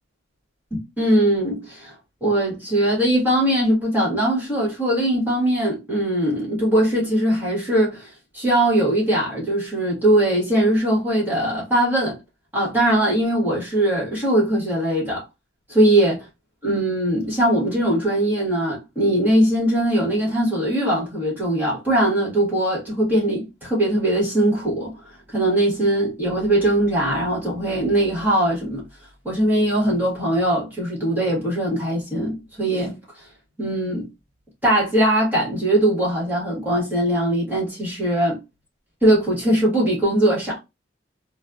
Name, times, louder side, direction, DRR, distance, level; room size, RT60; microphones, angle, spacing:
voice 1, 0.7-1.9 2.2-12.2 12.5-15.2 15.7-16.1 16.6-25.0 25.3-28.8 29.2-33.0 33.6-34.1 34.6-38.4 39.0-40.6, right 1 dB, 10° right, 1.5 m, -20 dB
3.1 x 2.2 x 2.4 m
head